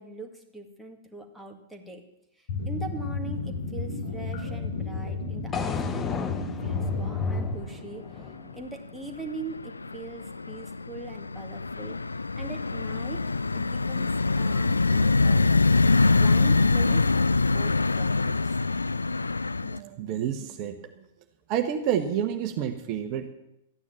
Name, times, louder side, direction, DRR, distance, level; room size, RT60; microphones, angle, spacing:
voice 1, 0.0-2.0 2.4-8.2 8.5-12.0 12.4-13.3 13.5-15.5 16.1-18.6, right 2 dB, ahead, 1 dB, 2.0 m, -41 dB
sound 1, 2.5-7.5, left 3 dB, 55° left, 6.8 m, -31 dB
sound 2, 5.5-9.6, left 6 dB, 20° left, 0.9 m, -36 dB
sound 3, 6.7-7.3 7.5-8.3 8.7-19.8, left 3 dB, 85° left, 0.4 m, -24 dB
voice 2, 19.6-20.9 21.5-23.3, right 9 dB, 40° right, 5 dB, 1.2 m, -29 dB
14.0 x 9.8 x 7.4 m, 0.85 s
figure-of-eight pair, 105°, 0 cm